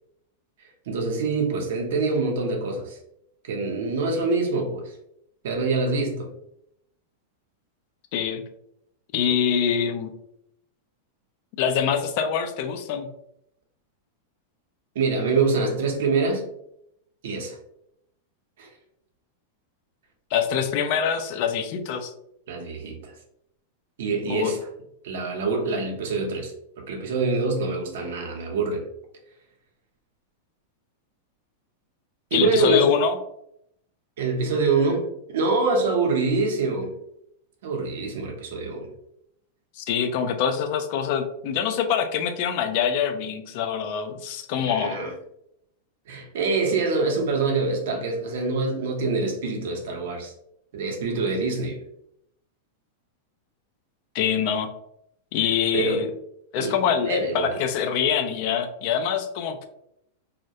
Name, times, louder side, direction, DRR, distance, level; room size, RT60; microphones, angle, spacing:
voice 1, 0.9-3.0 3.4-4.9 5.4-6.3 14.9-16.4 17.2-17.6 18.6-18.7 22.5-23.1 24.0-24.6 25.0-28.8 32.3-32.9 34.2-36.9 37.6-38.9 44.7-45.1 46.1-50.3 50.7-51.8 55.7-56.0 56.5-57.6, right 3 dB, 70° right, 2 dB, 0.7 m, -25 dB
voice 2, 8.1-8.4 9.1-10.1 11.6-13.1 20.3-22.1 24.3-24.5 32.3-33.2 39.8-45.0 54.1-54.7 55.3-56.1 56.5-59.7, left 8 dB, 55° left, 7 dB, 0.3 m, -24 dB
2.2 x 2.1 x 2.7 m, 0.77 s
hypercardioid pair, 115°, 0 cm